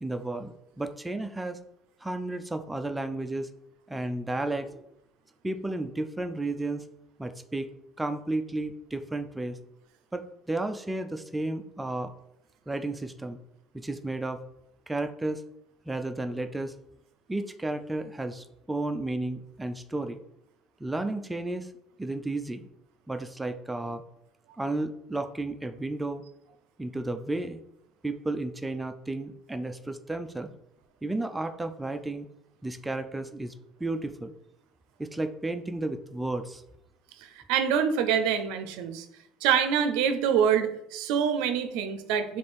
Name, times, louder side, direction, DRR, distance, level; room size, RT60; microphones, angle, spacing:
voice 1, 0.0-1.6 2.0-3.5 3.9-4.8 5.4-6.8 7.2-7.7 8.0-9.6 10.1-12.1 12.7-13.4 13.7-14.4 14.9-15.4 15.9-16.7 17.3-20.2 20.8-21.7 22.0-22.7 23.1-24.0 24.6-26.2 26.8-27.6 28.0-30.5 31.0-32.3 32.6-33.5 33.8-34.4 35.0-36.6, right 2 dB, 10° right, 7 dB, 0.3 m, -32 dB
voice 2, 37.2-39.1 39.4-42.4, right 8 dB, 80° right, 8 dB, 0.4 m, -25 dB
3.3 x 3.2 x 4.3 m, 0.82 s
supercardioid pair, 110°, 0 cm